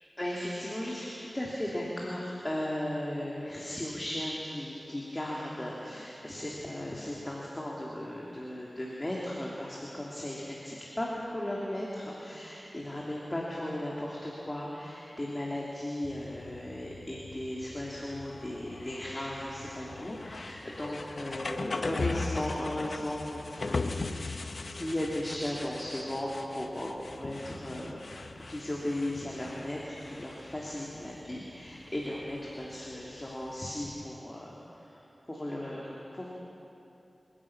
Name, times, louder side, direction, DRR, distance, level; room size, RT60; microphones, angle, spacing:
voice 1, 0.2-35.0 35.3-36.3, left 1 dB, 30° left, -4 dB, 3.0 m, -36 dB
sound 1, 16.0-34.0, left 3 dB, 75° left, 0.8 m, -40 dB
26.5 x 11.5 x 8.7 m, 2.9 s
wide cardioid pair, 50°, 0 cm